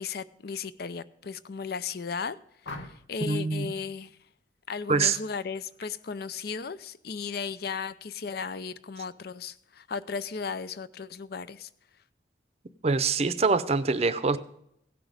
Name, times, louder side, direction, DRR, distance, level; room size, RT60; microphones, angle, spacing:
voice 1, 0.0-2.4 2.7-4.2 4.7-11.7, left 5 dB, 55° left, 15 dB, 0.5 m, -35 dB
sound 1, 2.6-3.3 5.0-5.3 5.7-6.0, left 2 dB, 75° left, 1.3 m, -43 dB
voice 2, 3.2-3.7 4.9-5.2 12.8-14.4, right 4 dB, 35° right, 13 dB, 0.6 m, -25 dB
16.5 x 6.0 x 5.0 m, 0.74 s
head